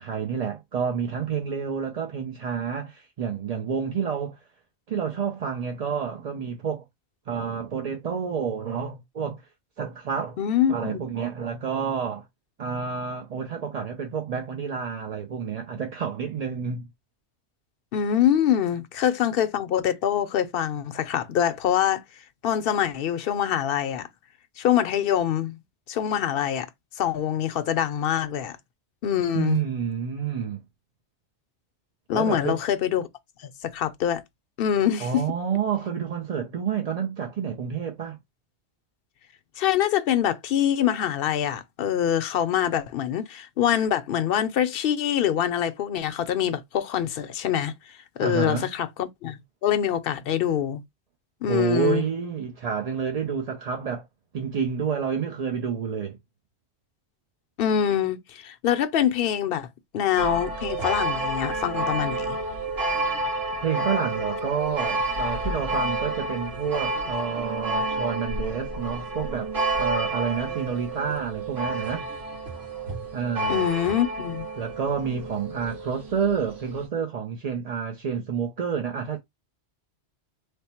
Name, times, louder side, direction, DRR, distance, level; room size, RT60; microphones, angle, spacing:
voice 1, 0.0-4.4 4.9-6.8 7.3-9.4 9.8-10.4 10.7-12.2 12.6-16.8 29.3-30.6 32.1-32.6 35.0-38.2 48.2-48.7 51.5-54.0 54.3-56.2 63.6-72.0 73.1-73.7 74.6-79.2, right 6 dB, 50° right, 0.5 m, -29 dB
voice 2, 10.4-11.0 17.9-22.0 22.4-24.1 24.6-25.6 25.9-26.7 27.0-28.6 29.0-29.6 32.1-33.1 33.7-34.2 34.6-35.2 39.6-47.7 48.2-50.8 51.4-52.1 57.6-59.7 59.9-62.4 73.5-74.5, left 10 dB, 60° left, 0.7 m, -24 dB
sound 1, 60.2-76.9, right 2 dB, 65° right, 1.8 m, -30 dB
3.4 x 2.0 x 4.2 m
omnidirectional pair, 1.2 m